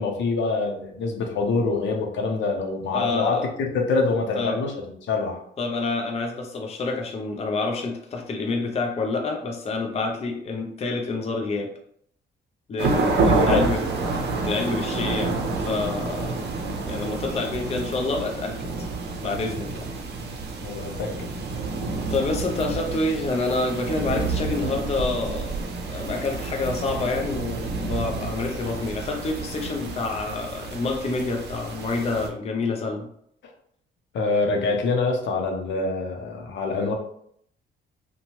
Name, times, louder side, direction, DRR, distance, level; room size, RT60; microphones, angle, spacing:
voice 1, 0.0-3.4 3.7-4.7 5.0-5.4 13.2-13.7 20.6-21.3 34.1-36.9, left 3 dB, 70° left, 2 dB, 0.7 m, -25 dB
voice 2, 2.9-3.5 4.4-4.6 5.6-11.7 12.7-13.8 14.4-16.4 16.8-18.7 19.2-19.9 22.1-25.5 25.9-33.1, left 3 dB, 30° left, 2 dB, 0.5 m, -28 dB
sound 1, 12.8-32.3, right 3 dB, 60° right, 0.6 m, -29 dB
2.7 x 2.2 x 3.0 m, 0.67 s
cardioid pair, 90°, 20 cm